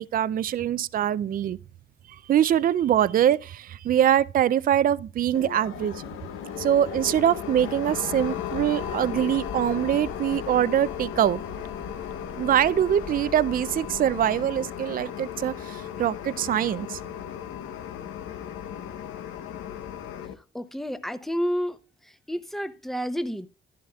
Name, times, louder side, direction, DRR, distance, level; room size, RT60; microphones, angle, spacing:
voice 1, 0.0-1.6 2.3-6.0 6.6-11.4 12.4-17.0, right 10 dB, 45° right, 0.4 m, -23 dB
sound 1, 5.3-20.3, left 9 dB, 85° left, 0.9 m, -36 dB
sound 2, 8.5-14.4, left 3 dB, 45° left, 2.6 m, -44 dB
voice 2, 20.5-21.8 22.3-23.5, equal, ahead, 0.8 m, -29 dB
12.0 x 11.0 x 2.4 m
cardioid pair, 90°, 20 cm